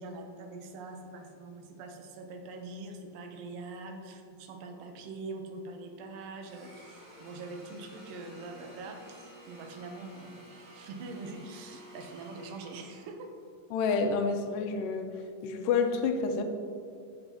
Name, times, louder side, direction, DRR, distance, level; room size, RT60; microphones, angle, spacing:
voice 1, 0.0-13.3, right 3 dB, 85° right, 4 dB, 2.5 m, -43 dB
Domestic sounds home sounds, 6.4-13.5, equal, 40° right, 2.9 m, -52 dB
voice 2, 13.7-15.1 15.4-16.4, left 5 dB, 85° left, 5 dB, 2.3 m, -28 dB
14.0 x 6.9 x 2.8 m, 2.3 s
omnidirectional pair, 3.8 m